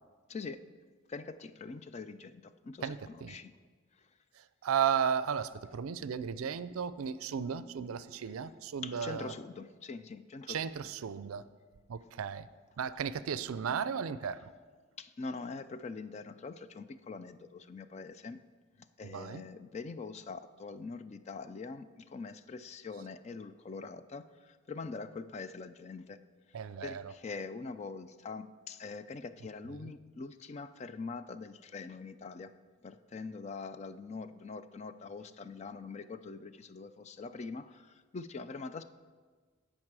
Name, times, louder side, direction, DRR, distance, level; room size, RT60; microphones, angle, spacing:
voice 1, 0.3-0.6 1.1-3.5 8.8-10.6 15.0-18.4 19.0-26.2 26.5-32.5 32.8-38.8, left 4 dB, 30° left, 12 dB, 0.3 m, -43 dB
voice 2, 2.8-3.4 4.6-9.3 10.5-11.4 11.9-12.5 12.8-14.4 19.0-19.4 26.5-27.1 29.8-29.9, right 7 dB, 80° right, 15 dB, 0.4 m, -34 dB
16.0 x 5.3 x 4.7 m, 1.5 s
head